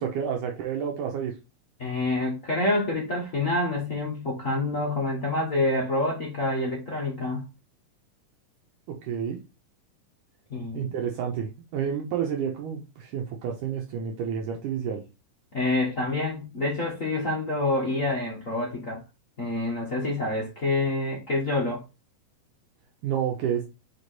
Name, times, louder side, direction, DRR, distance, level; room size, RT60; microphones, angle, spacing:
voice 1, 0.0-1.3 8.9-9.4 10.7-15.0 23.0-23.7, right 8 dB, 75° right, 2.4 m, -30 dB
voice 2, 1.8-7.5 10.5-10.9 15.5-19.0 19.4-21.8, left 2 dB, 70° left, 0.7 m, -27 dB
5.1 x 5.1 x 4.1 m
omnidirectional pair, 4.0 m